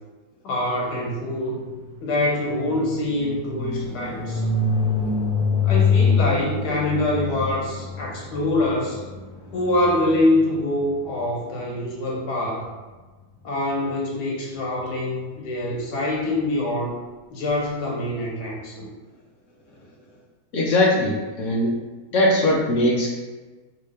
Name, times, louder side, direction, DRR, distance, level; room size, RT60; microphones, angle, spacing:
voice 1, 0.4-1.6 2.0-4.4 5.6-9.0 9.5-12.7 13.4-17.0 17.3-18.9, left 1 dB, 85° left, -3 dB, 1.5 m, -24 dB
sound 1, 1.1-11.0, left 4 dB, 20° right, 0.9 m, -26 dB
voice 2, 20.5-21.7 22.1-23.2, left 1 dB, 60° left, -3 dB, 0.9 m, -20 dB
3.2 x 2.8 x 3.2 m, 1.3 s
omnidirectional pair, 1.7 m